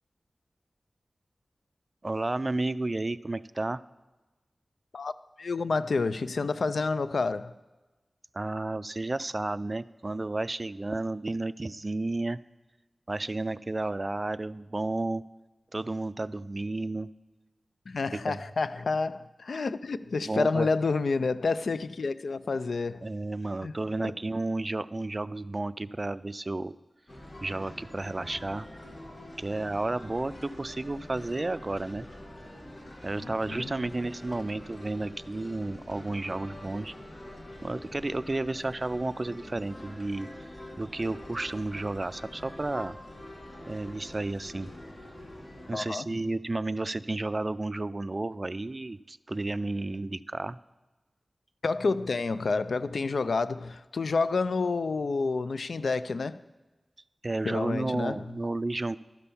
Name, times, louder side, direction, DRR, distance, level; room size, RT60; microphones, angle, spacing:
voice 1, 2.0-3.8 8.3-12.4 13.1-15.2 15.7-17.1 18.3-18.4 20.2-20.7 23.0-26.8 27.4-28.7 29.4-32.1 33.0-36.9 37.6-40.3 40.8-43.0 43.7-44.7 45.7-50.6 57.2-59.0, right 2 dB, 45° right, 0.3 m, -32 dB
voice 2, 5.4-7.5 17.9-23.1 23.6-23.7 24.0-24.1 33.2-33.7 45.7-46.2 51.6-56.4 57.4-58.3, left 4 dB, 85° left, 0.3 m, -29 dB
sound 1, 27.1-45.7, left 1 dB, 45° left, 1.9 m, -45 dB
12.0 x 5.6 x 6.9 m
cardioid pair, 40°, 0 cm